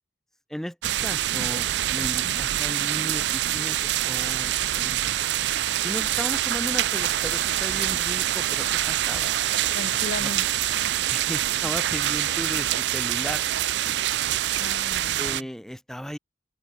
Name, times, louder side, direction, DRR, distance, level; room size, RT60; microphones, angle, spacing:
sound 1, 0.8-15.4, right 12 dB, 70° right, 0.4 m, -25 dB
voice 1, 1.0-3.8 4.1-5.1 5.8-9.3 10.2-10.3 11.1-13.4 15.2-16.2, equal, ahead, 0.6 m, -35 dB
voice 2, 2.0-2.4 9.7-10.5 10.8-10.9 14.6-15.5, left 3 dB, 60° left, 0.7 m, -37 dB
sound 2, 6.7-12.6, equal, 50° right, 5.1 m, -54 dB
head